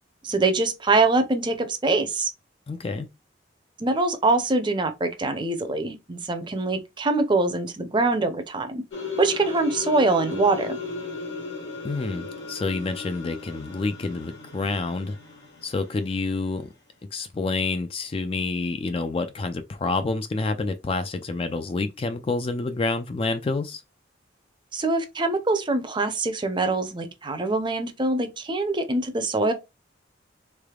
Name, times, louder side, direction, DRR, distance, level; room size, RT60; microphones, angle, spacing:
voice 1, 0.2-2.3 3.8-8.8 9.2-10.8 24.7-29.5, right 3 dB, 25° right, 0.6 m, -24 dB
voice 2, 2.7-3.1 11.8-15.2 15.6-16.7 17.1-23.8, left 3 dB, 30° left, 0.3 m, -28 dB
sound 1, 8.9-16.1, left 3 dB, 70° left, 1.4 m, -36 dB
3.6 x 3.3 x 2.3 m
head